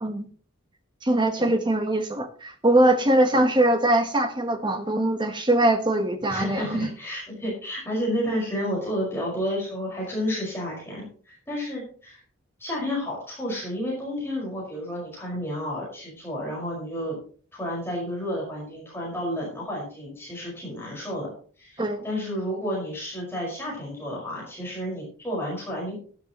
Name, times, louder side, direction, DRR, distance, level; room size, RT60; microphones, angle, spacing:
voice 1, 1.0-6.9 21.8-22.0, right 1 dB, 20° right, 6 dB, 1.2 m, -22 dB
voice 2, 6.3-12.2 12.6-17.2 17.5-21.3 21.6-26.0, equal, 10° left, -4 dB, 5.3 m, -31 dB
12.5 x 12.0 x 3.1 m, 0.43 s
head